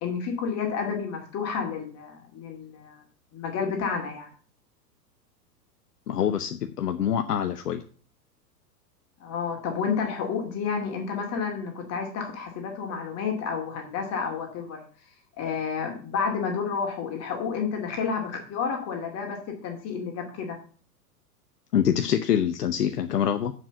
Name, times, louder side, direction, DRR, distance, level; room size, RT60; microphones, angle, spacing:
voice 1, 0.0-3.0 3.3-4.3 9.2-14.8 15.4-19.4 19.6-20.6, left 6 dB, 30° left, 2 dB, 2.4 m, -30 dB
voice 2, 6.1-7.8 21.7-23.5, left 9 dB, 70° left, 8 dB, 0.9 m, -25 dB
7.3 x 6.2 x 6.9 m, 0.42 s
figure-of-eight pair, 100°, 49 cm